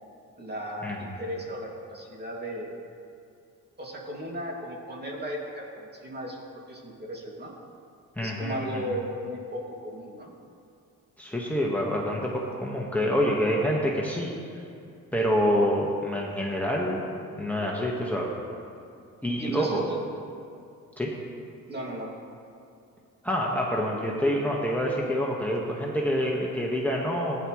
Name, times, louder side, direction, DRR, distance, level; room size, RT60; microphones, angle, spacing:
voice 1, 0.4-2.8 3.8-7.5 8.2-10.3 19.4-20.0 21.7-22.1, equal, 30° right, -2 dB, 2.5 m, -36 dB
voice 2, 8.2-8.8 11.2-14.3 15.1-17.0 17.4-18.3 19.2-19.8 21.0-21.1 23.2-27.5, equal, 5° left, -3 dB, 1.5 m, -27 dB
15.5 x 10.0 x 3.2 m, 2.5 s
cardioid pair, 80°, 32 cm